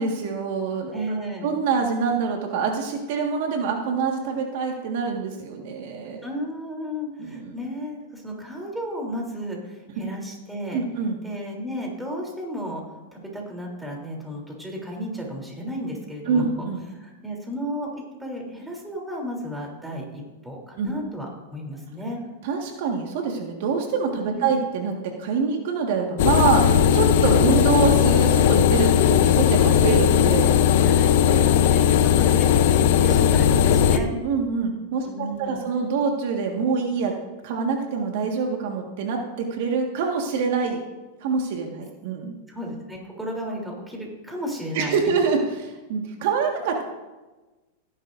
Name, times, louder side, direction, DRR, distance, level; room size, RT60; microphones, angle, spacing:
voice 1, 0.0-1.0 1.4-6.2 7.2-7.5 10.7-11.2 16.3-16.8 20.8-20.9 22.4-26.7 26.9-30.5 33.9-37.1 37.4-40.8 41.2-42.3 44.7-46.8, right 5 dB, 65° right, 2 dB, 1.7 m, -25 dB
voice 2, 0.9-1.6 6.2-10.8 11.2-12.8 13.1-16.7 16.9-22.2 24.3-24.5 30.8-34.1 35.0-35.6 42.5-45.0, equal, 5° right, -1 dB, 3.3 m, -33 dB
sound 1, 26.2-34.0, left 9 dB, 65° left, 0.7 m, -18 dB
17.5 x 10.5 x 2.6 m, 1.1 s
hypercardioid pair, 130°, 0 cm